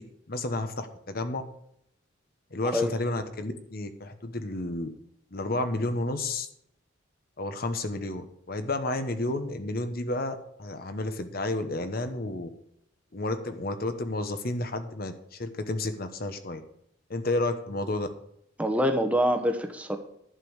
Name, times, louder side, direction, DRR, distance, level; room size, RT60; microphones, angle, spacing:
voice 1, 0.3-1.4 2.5-4.9 5.3-6.5 7.4-12.5 13.1-16.6 17.1-18.1, left 2 dB, 50° left, 9 dB, 1.0 m, -31 dB
voice 2, 18.6-20.0, equal, 5° right, 6 dB, 1.0 m, -25 dB
11.5 x 5.2 x 8.1 m, 0.75 s
head